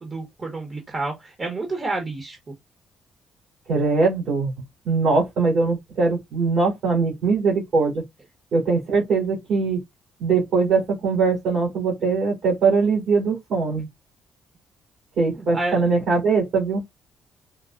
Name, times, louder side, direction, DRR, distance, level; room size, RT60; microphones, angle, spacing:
voice 1, 0.0-2.4 15.3-15.8, right 2 dB, 35° right, 1.1 m, -29 dB
voice 2, 3.7-4.5 4.8-8.0 8.5-9.8 10.2-13.9 15.2-16.8, right 4 dB, 70° right, 2.5 m, -21 dB
4.5 x 2.1 x 2.4 m
cardioid pair, 90°, 0 cm